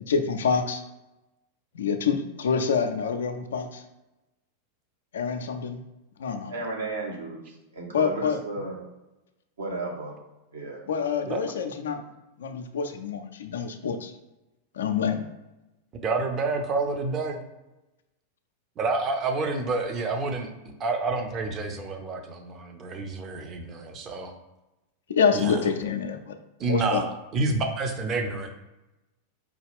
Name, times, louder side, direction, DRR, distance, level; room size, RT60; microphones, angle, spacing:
voice 1, 0.1-0.8 1.7-3.8 5.1-5.8 6.2-6.5 7.9-8.4 10.9-12.0 12.4-14.1 14.7-15.2 25.1-26.4 26.7-27.0, left 6 dB, 65° left, 7 dB, 0.4 m, -26 dB
voice 2, 6.5-8.8 9.6-10.2 10.5-10.8, right 2 dB, 70° right, -1 dB, 1.0 m, -34 dB
voice 3, 16.0-17.4 18.8-24.3 25.3-25.6 26.6-28.5, right 3 dB, 30° right, 4 dB, 0.6 m, -28 dB
4.8 x 2.3 x 3.4 m, 0.99 s
figure-of-eight pair, 90°, 0 cm